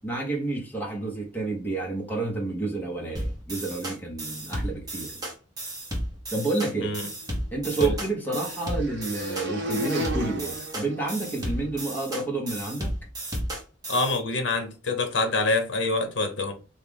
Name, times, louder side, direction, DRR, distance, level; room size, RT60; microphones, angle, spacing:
voice 1, 0.0-5.2 6.3-6.9 7.5-12.9, right 3 dB, 10° left, 1.0 m, -30 dB
sound 1, 3.2-14.2, right 1 dB, 20° right, 0.9 m, -33 dB
sound 2, 7.1-11.7, equal, 60° right, 0.9 m, -35 dB
voice 2, 13.9-16.5, left 3 dB, 75° left, 0.9 m, -26 dB
3.2 x 2.4 x 3.5 m
head